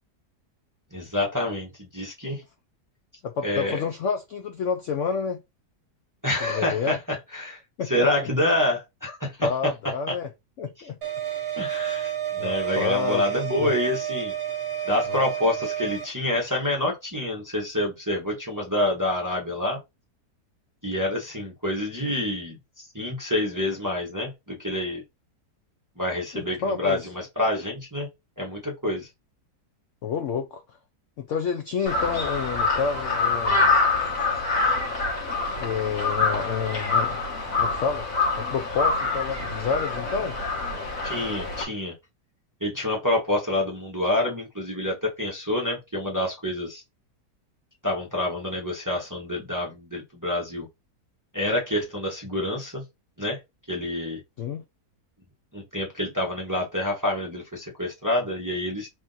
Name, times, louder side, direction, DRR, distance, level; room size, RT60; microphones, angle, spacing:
voice 1, 0.9-2.4 3.4-3.8 6.2-7.6 7.8-9.5 10.1-10.2 11.6-14.3 14.9-19.8 20.8-25.0 26.0-28.1 28.4-29.1 41.0-41.9 42.6-46.8 47.8-50.7 51.3-52.8 53.2-53.4 53.7-54.2 55.5-58.9, left 1 dB, 15° right, 0.6 m, -27 dB
voice 2, 3.2-5.4 6.5-7.0 7.8-8.1 9.4-10.3 10.6-11.0 12.4-13.2 13.6-13.7 15.1-15.2 26.3-27.1 30.0-30.6 31.2-33.7 35.6-37.2 37.6-38.1 38.3-40.4 54.4-54.6, left 6 dB, 75° left, 0.7 m, -29 dB
sound 1, 11.0-16.1, right 10 dB, 65° right, 1.2 m, -30 dB
Crow, 31.9-41.6, left 3 dB, 55° left, 1.6 m, -25 dB
3.6 x 2.6 x 3.8 m
omnidirectional pair, 1.8 m